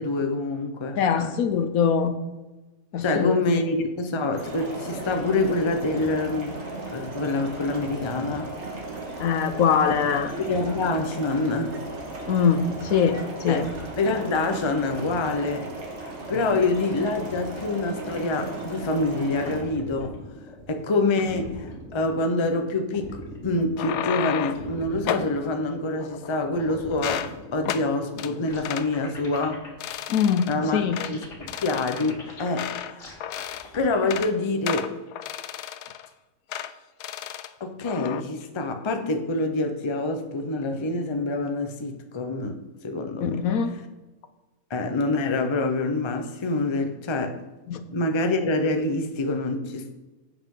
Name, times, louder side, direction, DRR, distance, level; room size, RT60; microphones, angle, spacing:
voice 1, 0.0-1.4 3.0-6.6 6.9-8.5 10.4-11.8 13.5-13.6 13.9-15.7 16.3-20.2 20.7-23.2 23.4-29.6 30.5-33.2 33.7-34.9 37.6-43.4 44.7-47.4 47.9-49.9, left 2 dB, 25° left, 0.6 m, -26 dB
voice 2, 1.0-2.2 2.9-3.3 9.2-10.3 12.3-13.7 16.3-16.4 30.1-31.0 43.2-43.7 47.7-47.8, left 7 dB, 70° left, 1.1 m, -23 dB
sound 1, 4.3-19.6, right 2 dB, 45° right, 2.0 m, -36 dB
sound 2, 19.4-34.2, left 1 dB, 50° left, 2.2 m, -42 dB
sound 3, 23.6-24.7 25.1-25.3 26.0-26.6 26.9-27.3 27.7-27.9 28.2-28.3 28.6-28.9 29.3-29.5 29.8-30.6 30.9-31.1 31.5-32.9 33.2-33.7 34.0-34.3 34.7-36.1 36.5-36.7 37.0-37.5 37.8-38.2, left 11 dB, 85° left, 1.1 m, -32 dB
11.0 x 8.3 x 3.8 m
omnidirectional pair, 1.7 m